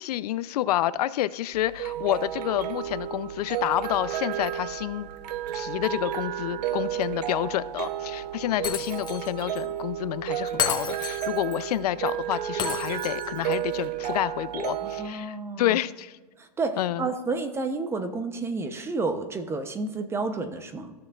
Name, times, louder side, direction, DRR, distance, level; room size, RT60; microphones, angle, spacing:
voice 1, 0.0-5.1 5.5-16.2 16.8-17.1, left 14 dB, 70° left, 17 dB, 0.4 m, -29 dB
sound 1, 1.5-15.1, right 11 dB, 80° right, 0.6 m, -32 dB
Shatter, 8.6-9.3 9.6-9.7 10.6-11.6 12.6-13.6, left 8 dB, 20° left, 1.0 m, -31 dB
voice 2, 14.8-15.8 16.4-20.9, right 3 dB, 10° right, 9 dB, 0.6 m, -30 dB
14.5 x 6.6 x 2.3 m, 1.2 s
supercardioid pair, 145°, 21 cm